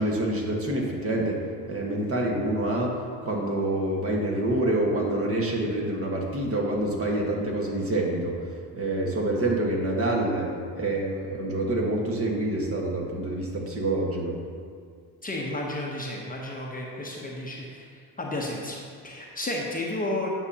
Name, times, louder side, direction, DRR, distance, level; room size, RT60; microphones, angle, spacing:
voice 1, 0.0-8.4 8.7-14.4, right 1 dB, 35° right, -2 dB, 1.6 m, -27 dB
voice 2, 15.2-17.9 18.2-20.3, left 1 dB, 20° left, -2 dB, 0.9 m, -32 dB
9.5 x 5.7 x 2.8 m, 2.1 s
supercardioid pair, 75°, 42 cm